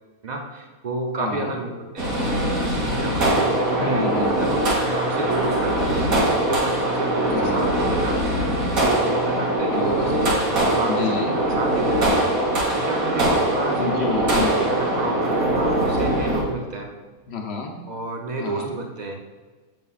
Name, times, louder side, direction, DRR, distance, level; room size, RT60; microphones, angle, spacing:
voice 1, 0.2-1.7 1.9-2.4 2.7-4.1 4.4-8.2 8.8-12.2 12.7-14.0 14.3-16.9 17.9-19.3, right 2 dB, 45° right, 2 dB, 0.5 m, -30 dB
voice 2, 1.2-1.6 3.8-4.6 7.3-7.7 9.7-10.2 10.9-11.4 13.8-14.8 17.3-17.8 18.4-18.7, left 4 dB, 55° left, 2 dB, 0.9 m, -29 dB
sound 1, 2.0-16.4, right 1 dB, 70° right, 2.0 m, -22 dB
7.7 x 5.7 x 2.4 m, 1.4 s
omnidirectional pair, 1.5 m